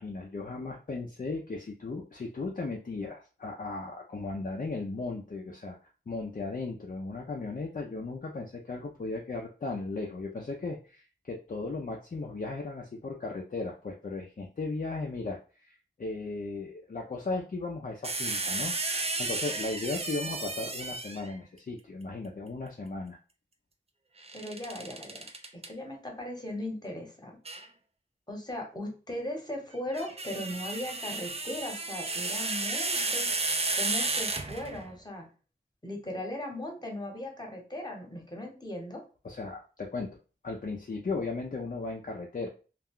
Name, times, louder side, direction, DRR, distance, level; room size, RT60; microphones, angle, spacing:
voice 1, 0.0-5.8 6.1-18.7 19.2-23.2 39.2-40.2 40.4-42.5, left 3 dB, 45° left, 0 dB, 0.4 m, -36 dB
sound 1, 18.0-21.4 24.2-25.7 27.5-27.7 29.8-34.9, right 3 dB, 30° right, 0.4 m, -33 dB
voice 2, 24.3-27.4 28.3-33.3 33.7-35.3 35.8-39.0, left 1 dB, 20° left, 1 dB, 1.0 m, -38 dB
2.4 x 2.2 x 3.5 m, 0.35 s
wide cardioid pair, 50°, 20 cm